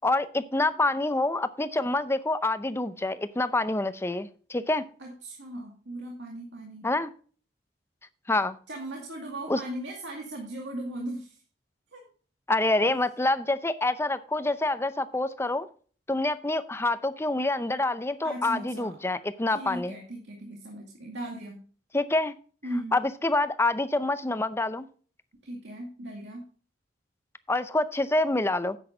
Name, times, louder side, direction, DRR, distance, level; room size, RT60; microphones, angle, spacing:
voice 1, 0.0-4.8 6.8-7.1 8.3-8.6 9.5-9.6 12.5-15.7 16.1-19.9 21.9-22.3 22.9-24.9 27.5-28.8, left 2 dB, 15° left, 12 dB, 0.6 m, -27 dB
voice 2, 5.0-6.9 8.7-11.4 11.9-12.0 12.8-13.0 18.2-18.9 19.5-21.6 22.6-23.0 25.4-26.4, right 1 dB, 75° right, 0 dB, 2.2 m, -38 dB
10.5 x 8.3 x 3.8 m, 0.41 s
head